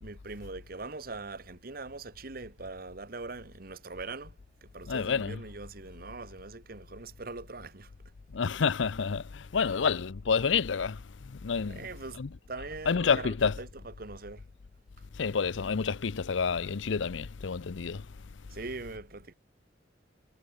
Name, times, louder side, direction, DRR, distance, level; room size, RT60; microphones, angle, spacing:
voice 1, 0.0-7.9 11.7-12.2 12.5-14.4 18.5-19.3, right 3 dB, 50° right, 1.3 m, -42 dB
voice 2, 4.9-5.4 8.3-11.8 12.2-12.3 12.9-13.6 15.2-18.1, left 5 dB, 90° left, 0.6 m, -29 dB
head